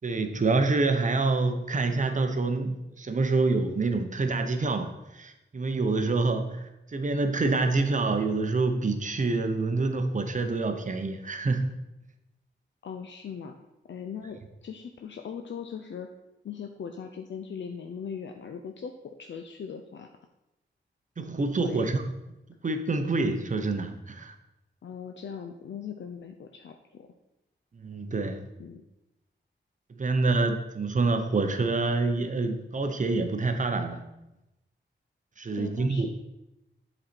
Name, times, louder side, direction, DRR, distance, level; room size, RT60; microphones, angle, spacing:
voice 1, 0.0-11.7 21.2-22.0 22.6-24.3 27.8-28.5 29.9-34.0 35.4-36.1, right 3 dB, 40° right, 6 dB, 0.7 m, -27 dB
voice 2, 12.8-13.6 13.8-16.1 16.4-20.1 21.6-21.9 24.8-27.1 28.6-28.8 35.5-36.1, left 7 dB, 70° left, 5 dB, 0.5 m, -39 dB
7.9 x 4.2 x 4.3 m, 0.95 s
wide cardioid pair, 105°, 20 cm